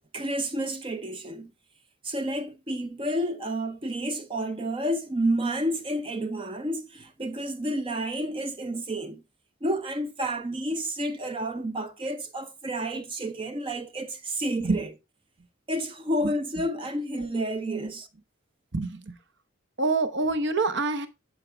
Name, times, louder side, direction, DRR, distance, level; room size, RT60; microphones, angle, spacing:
voice 1, 0.1-1.5 2.0-9.2 9.6-14.9 15.7-18.1, right 1 dB, 25° right, 0.6 m, -30 dB
voice 2, 18.7-19.1 19.8-21.1, right 3 dB, 55° right, 1.0 m, -26 dB
10.5 x 5.0 x 3.3 m
head